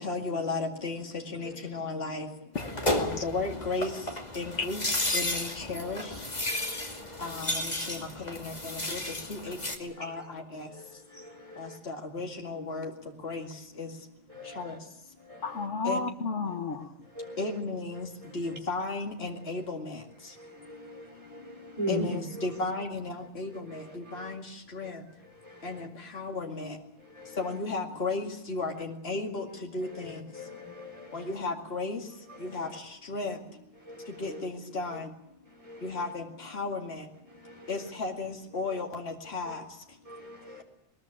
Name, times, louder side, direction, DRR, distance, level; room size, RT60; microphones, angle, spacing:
voice 1, 0.0-2.6 3.0-4.8 5.1-6.9 7.2-14.1 14.4-15.1 15.8-16.2 16.8-16.9 17.2-25.1 25.6-26.8 27.2-30.6 30.9-33.6 34.1-35.1 35.8-37.1 37.4-40.0, left 3 dB, 60° left, 2 dB, 2.5 m, -36 dB
sound 1, 2.5-9.8, left 1 dB, 35° left, 2.7 m, -33 dB
voice 2, 2.6-3.2 4.6-4.7 15.4-16.9, left 4 dB, 85° left, 7 dB, 1.9 m, -33 dB
voice 3, 6.5-7.2 10.0-10.1 10.7-11.8 14.3-14.7 15.3-15.4 17.2-17.4 20.4-22.1 23.7-24.3 25.4-25.8 27.2-27.4 29.9-31.3 32.3-32.6 33.9-34.4 35.6-35.9 37.4-37.7 40.1-40.6, equal, 30° right, 0 dB, 5.2 m, -41 dB
21.5 x 21.0 x 8.8 m, 0.84 s
omnidirectional pair, 1.2 m